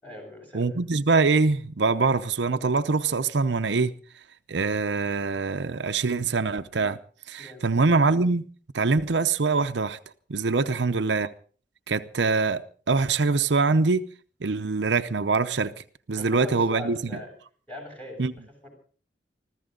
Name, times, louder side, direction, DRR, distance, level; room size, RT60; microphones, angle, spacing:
voice 1, 0.0-0.8 7.4-7.7 10.6-10.8 16.1-17.3 17.7-18.7, left 2 dB, 10° left, 7.7 m, -41 dB
voice 2, 0.5-3.9 4.5-7.0 7.3-8.5 8.7-10.0 10.3-11.3 11.9-14.1 14.4-15.7 16.1-17.1 18.2-18.3, right 4 dB, 75° right, 0.7 m, -24 dB
25.0 x 14.5 x 3.9 m
head